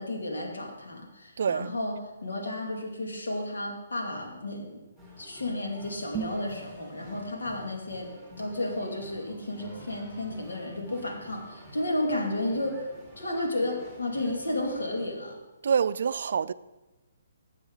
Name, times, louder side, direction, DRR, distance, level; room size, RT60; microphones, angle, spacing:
voice 1, 0.0-4.8 5.2-8.1 8.4-12.9 13.2-15.4, left 1 dB, 85° left, 2.5 m, -32 dB
voice 2, 1.4-1.7 15.6-16.5, right 6 dB, 65° right, 0.4 m, -26 dB
sound 1, 5.0-15.1, equal, 10° left, 2.8 m, -48 dB
sound 2, 6.0-6.5, right 9 dB, 15° right, 1.9 m, -35 dB
12.5 x 7.4 x 4.0 m
hypercardioid pair, 150°, 0 cm